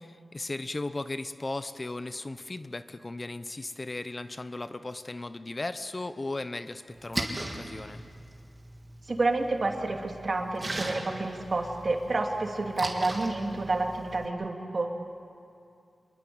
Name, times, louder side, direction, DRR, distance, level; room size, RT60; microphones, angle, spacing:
voice 1, 0.0-8.0, left 2 dB, 40° left, 11 dB, 1.0 m, -36 dB
Splash splatter, 6.9-14.3, right 1 dB, 35° right, 3.5 m, -39 dB
voice 2, 9.1-14.9, right 2 dB, 55° right, 2 dB, 3.1 m, -29 dB
26.5 x 22.5 x 8.8 m, 2.6 s
cardioid pair, 55°, 0 cm